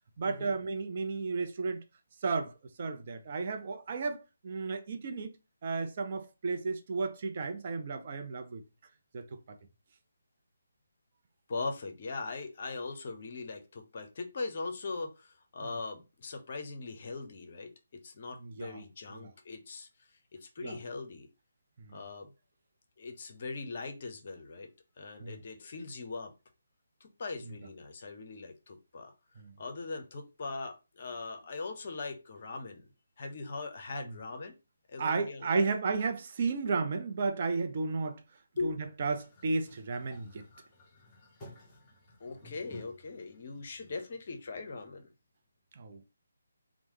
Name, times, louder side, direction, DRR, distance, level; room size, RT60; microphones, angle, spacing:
voice 1, 0.2-1.8 2.2-2.5 2.8-5.3 5.6-8.6 9.1-9.6 15.6-15.8 18.4-19.3 20.6-20.8 21.8-22.0 25.2-25.4 27.5-27.6 29.4-29.5 34.0-34.2 35.0-38.2 38.6-40.5 45.7-46.0, right 4 dB, 40° right, 0.4 m, -33 dB
voice 2, 11.5-19.9 20.3-21.3 21.9-22.3 23.0-24.7 25.0-26.3 27.0-29.1 29.6-32.8 33.2-34.6 34.9-35.6 38.6-38.7 41.7-41.8 42.2-45.1, left 3 dB, 45° left, 0.6 m, -40 dB
sound 1, 39.2-44.5, left 1 dB, 20° left, 1.1 m, -55 dB
3.0 x 2.0 x 3.0 m
figure-of-eight pair, 145°, 0 cm